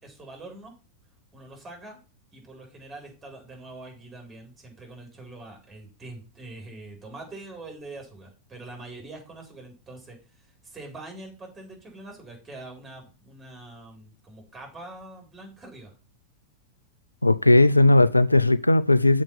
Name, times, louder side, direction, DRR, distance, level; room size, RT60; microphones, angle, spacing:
voice 1, 0.0-0.8 1.3-2.0 2.3-15.9, right 2 dB, 15° right, 4.4 m, -44 dB
voice 2, 17.2-19.2, left 2 dB, 85° left, 0.4 m, -17 dB
7.1 x 5.4 x 6.9 m
figure-of-eight pair, 90°, 0 cm